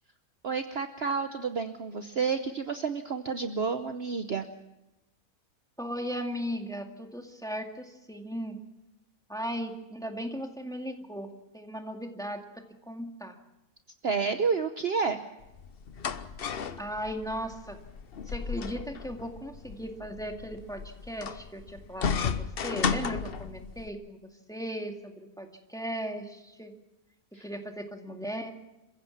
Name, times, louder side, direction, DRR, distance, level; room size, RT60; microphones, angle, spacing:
voice 1, 0.4-4.5 14.0-15.2 27.3-27.4, right 5 dB, 50° right, 8 dB, 1.1 m, -30 dB
voice 2, 5.8-8.6 9.3-11.3 11.5-13.4 16.8-17.8 18.3-26.7 27.4-28.5, equal, ahead, 3 dB, 2.1 m, -37 dB
sound 1, 15.4-23.9, left 6 dB, 45° left, 1.0 m, -34 dB
28.0 x 15.5 x 7.2 m, 0.97 s
omnidirectional pair, 1.6 m